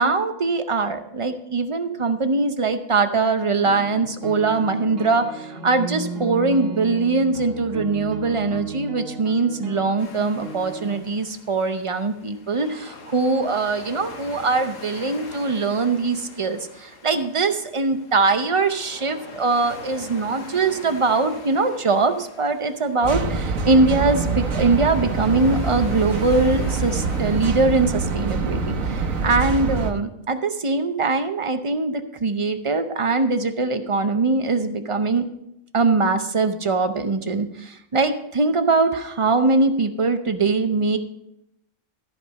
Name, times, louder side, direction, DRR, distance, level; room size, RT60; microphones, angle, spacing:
voice 1, 0.0-35.2 35.7-41.0, right 3 dB, 35° right, 8 dB, 0.5 m, -22 dB
sound 1, 3.6-11.0, right 4 dB, 65° right, 1.5 m, -35 dB
sound 2, 10.0-27.9, left 3 dB, 75° left, 1.7 m, -43 dB
sound 3, 23.0-29.9, right 4 dB, 80° right, 1.4 m, -25 dB
14.0 x 5.2 x 5.3 m, 0.81 s
omnidirectional pair, 1.4 m